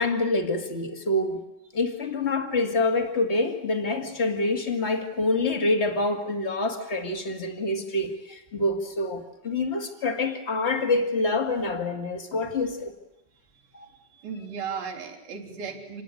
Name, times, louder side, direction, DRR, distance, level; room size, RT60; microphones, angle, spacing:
voice 1, 0.0-1.4 1.7-12.9 13.7-13.9, left 2 dB, 25° left, 1.7 m, -26 dB
voice 2, 14.1-16.0, right 6 dB, 90° right, 5.3 m, -36 dB
27.0 x 19.5 x 9.8 m
omnidirectional pair, 4.1 m